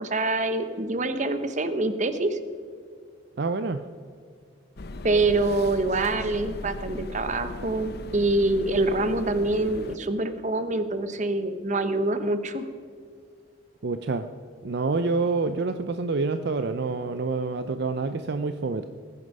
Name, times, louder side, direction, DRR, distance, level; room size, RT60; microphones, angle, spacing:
voice 1, 0.0-2.4 5.0-12.7, right 2 dB, 40° right, 10 dB, 1.0 m, -25 dB
voice 2, 3.4-3.8 13.8-14.3 14.6-18.9, right 3 dB, 55° right, 9 dB, 0.5 m, -27 dB
sound 1, 4.8-10.0, left 2 dB, 55° left, 0.7 m, -38 dB
20.5 x 9.6 x 5.4 m, 2.1 s
head